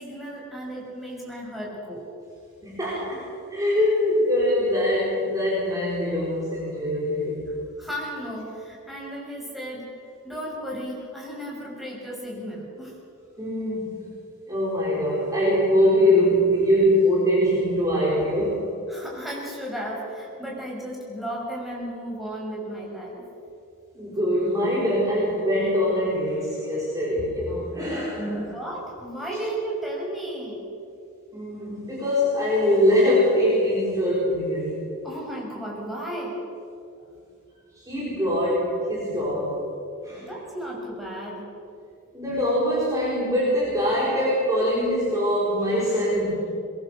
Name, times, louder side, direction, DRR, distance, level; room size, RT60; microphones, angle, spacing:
voice 1, 0.0-2.1 7.8-9.9 10.2-13.0 18.9-23.2 28.2-30.7 35.0-36.4 40.2-41.5, right 1 dB, ahead, -4 dB, 6.6 m, -34 dB
voice 2, 2.6-3.2 3.5-7.5 13.4-14.0 14.5-18.7 23.9-28.5 31.3-34.8 37.8-39.6 40.0-40.3 42.1-46.5, equal, 15° right, -6 dB, 4.9 m, -23 dB
22.5 x 22.0 x 6.9 m, 2.6 s
head